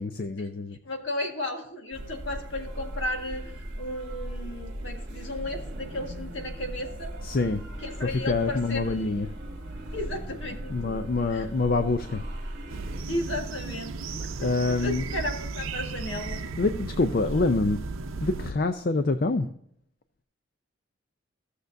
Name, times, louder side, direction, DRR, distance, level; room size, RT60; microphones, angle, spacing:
voice 1, 0.0-0.8 7.2-7.6 8.0-9.3 10.5-12.3 14.1-15.3 16.6-17.8 18.2-19.5, left 3 dB, 45° left, 9 dB, 0.5 m, -26 dB
voice 2, 0.9-3.4 3.8-7.1 7.8-8.9 9.9-10.7 11.3-11.4 13.1-16.4, left 1 dB, 65° left, 3 dB, 1.7 m, -34 dB
sound 1, 1.9-13.0, right 1 dB, 55° right, 1.7 m, -38 dB
sound 2, 12.7-18.5, right 3 dB, 85° right, 0.7 m, -35 dB
15.0 x 6.6 x 2.6 m, 0.69 s
head